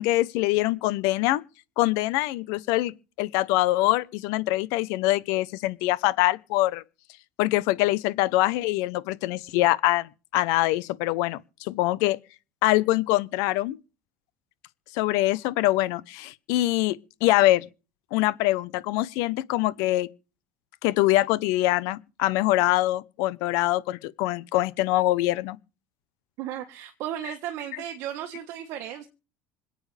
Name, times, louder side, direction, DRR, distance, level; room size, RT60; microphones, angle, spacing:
voice 1, 0.0-1.4 1.8-6.8 7.4-12.2 12.6-13.8 14.9-17.6 18.1-20.1 20.8-25.6, left 17 dB, 70° left, 0.9 m, -24 dB
voice 2, 26.4-29.1, right 11 dB, 55° right, 1.6 m, -35 dB
26.5 x 8.9 x 3.5 m
cardioid pair, 175°, 6 cm